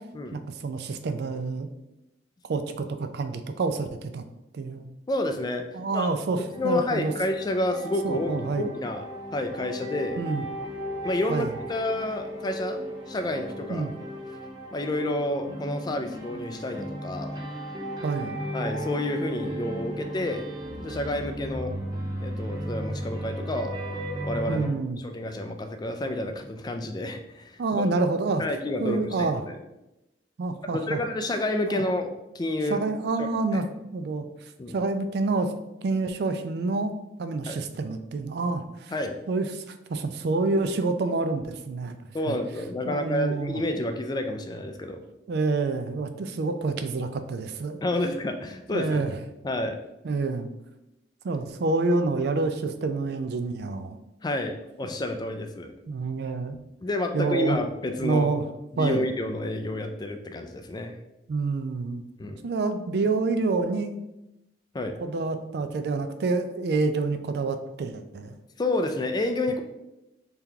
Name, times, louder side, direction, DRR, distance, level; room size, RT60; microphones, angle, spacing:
voice 1, 0.3-1.7 2.5-4.2 4.5-4.9 5.7-7.1 8.0-8.7 10.2-10.5 11.3-11.5 13.7-13.9 18.0-18.4 24.5-25.0 27.6-28.4 28.8-29.4 30.4-31.0 31.7-31.8 32.7-33.7 33.9-34.3 34.7-35.5 35.8-36.9 37.2-38.9 39.3-42.0 42.3-42.4 42.8-43.6 45.3-47.8 48.7-49.2 50.0-50.5 51.2-54.0 55.9-56.6 57.1-57.6 58.0-58.4 58.8-59.1 61.3-62.0 62.4-63.9 65.0-68.4, right 3 dB, 65° right, 8 dB, 0.4 m, -27 dB
voice 2, 5.1-5.6 5.9-6.1 6.5-9.1 9.3-10.2 11.0-13.9 14.7-17.4 18.5-20.5 20.8-21.7 22.2-23.7 24.2-24.7 25.0-27.8 28.4-29.6 30.7-32.8 33.2-33.6 34.6-34.8 37.5-37.6 38.9-39.2 42.1-45.0 47.8-49.1 49.4-49.8 54.2-55.7 56.8-58.3 58.7-61.0 62.2-62.4 64.7-64.9 68.6-69.6, left 1 dB, 25° left, 6 dB, 0.3 m, -29 dB
sound 1, 6.5-24.7, equal, 25° right, 0.8 m, -35 dB
3.4 x 2.9 x 3.7 m, 0.92 s
head